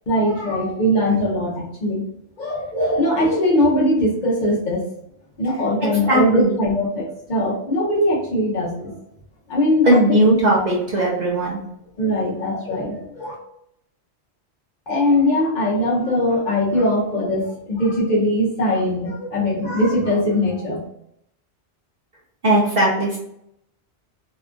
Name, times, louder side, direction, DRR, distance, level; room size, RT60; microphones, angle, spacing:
voice 1, 0.1-2.0 2.4-4.8 5.4-9.0 9.5-10.2 12.0-13.3 14.9-20.9, left 1 dB, 50° left, -4 dB, 0.7 m, -21 dB
voice 2, 6.1-6.6 9.8-11.6 22.4-23.2, right 1 dB, 50° right, -3 dB, 0.5 m, -17 dB
2.8 x 2.3 x 2.4 m, 0.75 s
omnidirectional pair, 1.2 m